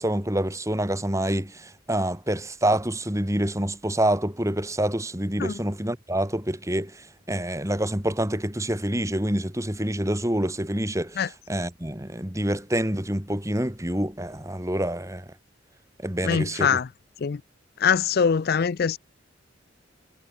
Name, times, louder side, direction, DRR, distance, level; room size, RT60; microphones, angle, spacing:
voice 1, 0.0-15.2 16.0-16.8, right 1 dB, 15° right, 2.8 m, -27 dB
voice 2, 16.2-16.9 17.2-17.4 17.8-19.0, left 6 dB, 50° left, 0.4 m, -23 dB
head